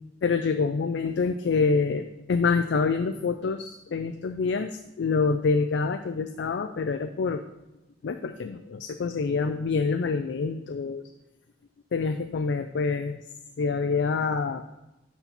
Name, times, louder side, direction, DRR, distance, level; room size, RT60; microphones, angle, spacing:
voice 1, 0.2-7.4 8.0-11.0 11.9-13.2 13.6-14.8, left 4 dB, 80° left, 9 dB, 0.4 m, -26 dB
11.5 x 4.3 x 4.0 m, 0.95 s
head